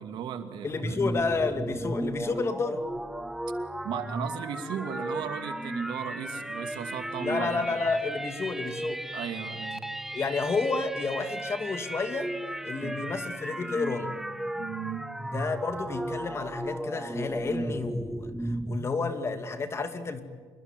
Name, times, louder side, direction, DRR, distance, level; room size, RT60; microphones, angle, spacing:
voice 1, 0.0-1.0 3.8-7.8 9.1-9.8 12.8-13.0 14.6-15.1, right 8 dB, 70° right, 8 dB, 2.5 m, -36 dB
voice 2, 0.6-2.8 7.2-9.0 10.1-12.3 12.6-14.1 15.3-20.2, left 4 dB, 30° left, 9 dB, 2.5 m, -31 dB
sound 1, 0.7-18.9, right 1 dB, 5° right, 1.0 m, -35 dB
27.0 x 22.0 x 9.3 m, 1.6 s
cardioid pair, 110°, 8 cm